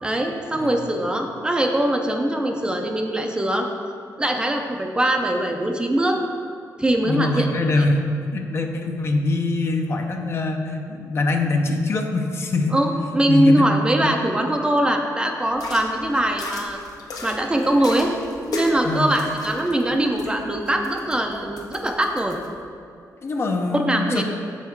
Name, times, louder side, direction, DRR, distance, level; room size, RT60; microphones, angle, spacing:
voice 1, 0.0-3.7 4.2-6.2 6.8-7.5 7.8-7.9 12.7-16.8 17.2-18.1 18.5-22.4 23.7-24.2, right 1 dB, 15° right, 3 dB, 0.5 m, -22 dB
voice 2, 7.0-8.0 8.3-12.8 13.3-13.7 14.0-14.2 18.8-19.1 21.4-21.5 23.2-24.2, left 2 dB, 40° left, 4 dB, 0.6 m, -23 dB
sound 1, 15.5-22.5, left 2 dB, 70° left, 1.0 m, -37 dB
7.3 x 5.6 x 4.5 m, 2.5 s
wide cardioid pair, 140°, 7 cm